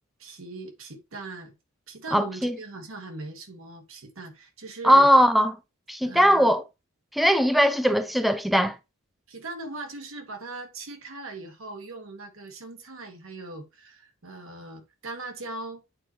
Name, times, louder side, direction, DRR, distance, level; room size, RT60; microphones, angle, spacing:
voice 1, 0.2-1.5 1.9-5.1 6.0-6.6 9.3-15.8, right 3 dB, 90° right, 1.4 m, -39 dB
voice 2, 2.1-2.6 4.8-5.5 5.9-6.6 7.1-8.7, equal, ahead, 0.4 m, -19 dB
8.4 x 4.3 x 2.8 m
head